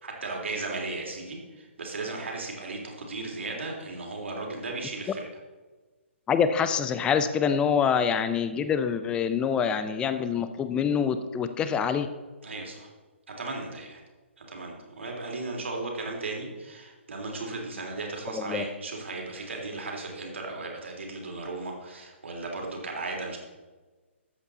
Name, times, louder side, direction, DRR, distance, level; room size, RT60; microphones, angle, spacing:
voice 1, 0.0-5.3 12.4-12.9 13.3-14.0 14.4-23.4, right 3 dB, 65° right, 0 dB, 3.3 m, -36 dB
voice 2, 6.3-12.1 18.3-18.6, left 7 dB, 15° left, 11 dB, 0.7 m, -25 dB
13.5 x 8.1 x 4.1 m, 1.3 s
figure-of-eight pair, 135°, 7 cm